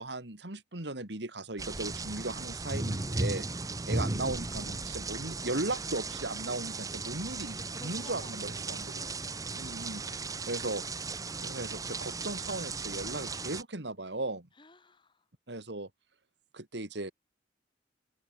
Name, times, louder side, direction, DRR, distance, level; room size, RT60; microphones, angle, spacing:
voice 1, 0.0-3.5 3.9-9.0 9.5-10.8 11.4-14.5 15.5-15.9 16.5-17.1, right 2 dB, 70° right, 2.8 m, -37 dB
sound 1, 1.6-13.6, right 3 dB, 20° right, 0.8 m, -36 dB
voice 2, 7.6-9.6 14.6-15.3, left 2 dB, 25° left, 5.3 m, -54 dB
head